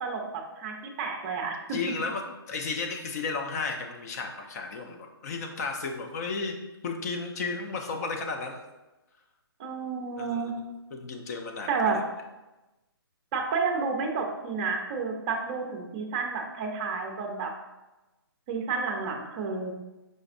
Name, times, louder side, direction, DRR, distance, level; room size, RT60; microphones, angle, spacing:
voice 1, 0.0-1.8 9.6-10.5 11.7-12.0 13.3-17.5 18.5-19.7, right 5 dB, 25° right, 2 dB, 0.6 m, -30 dB
voice 2, 1.7-6.6 6.8-8.6 10.2-10.5 10.9-12.0, left 4 dB, 40° left, 4 dB, 0.6 m, -33 dB
5.0 x 3.9 x 2.5 m, 1.1 s
hypercardioid pair, 155°, 13 cm